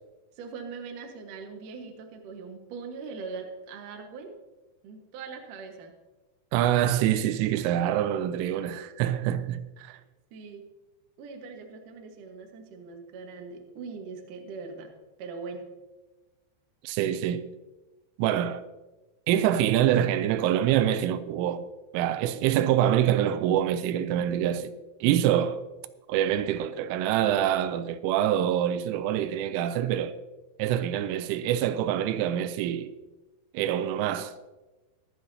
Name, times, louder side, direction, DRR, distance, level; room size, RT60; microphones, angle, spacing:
voice 1, 0.4-4.3 4.8-5.9 9.9-10.0 10.3-10.6 11.2-14.9 15.2-15.6, right 4 dB, 65° right, 2.2 m, -41 dB
voice 2, 6.5-10.0 16.8-17.5 18.2-18.6 19.3-21.7 21.9-24.7 25.0-25.6 26.1-30.2 30.6-32.9 33.5-34.3, right 11 dB, 85° right, 3.1 m, -25 dB
23.5 x 8.2 x 2.8 m
omnidirectional pair, 5.6 m